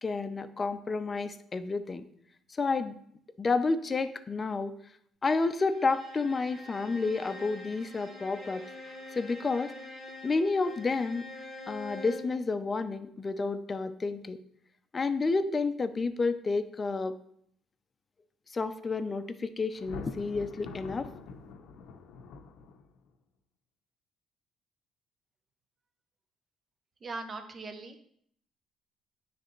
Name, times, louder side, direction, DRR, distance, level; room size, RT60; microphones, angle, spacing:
voice 1, 0.0-2.0 2.6-2.9 3.4-4.7 5.2-8.6 9.2-9.7 10.2-11.2 11.7-14.4 14.9-17.1 18.5-21.1, left 3 dB, 30° left, 10 dB, 0.5 m, -30 dB
Bowed string instrument, 5.5-12.4, left 2 dB, 55° right, 1.5 m, -45 dB
Thunder, 19.7-23.1, left 5 dB, 85° left, 0.6 m, -45 dB
voice 2, 27.0-28.1, right 3 dB, 40° right, 6 dB, 0.8 m, -40 dB
9.6 x 3.4 x 3.1 m, 0.66 s
cardioid pair, 80°, 0 cm